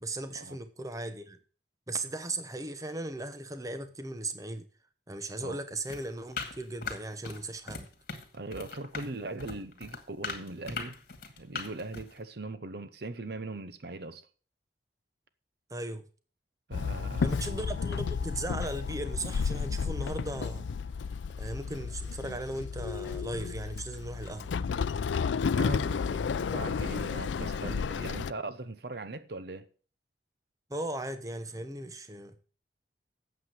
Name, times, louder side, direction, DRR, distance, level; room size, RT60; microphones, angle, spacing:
voice 1, 0.0-1.4 1.9-4.7 5.1-7.9 15.7-16.0 17.2-20.6 21.4-24.5 30.7-32.3, right 2 dB, 20° right, 0.9 m, -37 dB
sound 1, 5.9-7.4 7.7-8.3 8.5-12.2, left 4 dB, 55° left, 2.2 m, -39 dB
voice 2, 8.3-11.0 11.4-14.3 16.7-17.5 25.5-29.7, right 2 dB, 60° right, 0.9 m, -40 dB
Walk footsteps / Chatter / Hiss, 16.7-28.3, left 5 dB, 90° left, 0.4 m, -32 dB
8.8 x 7.5 x 7.6 m
head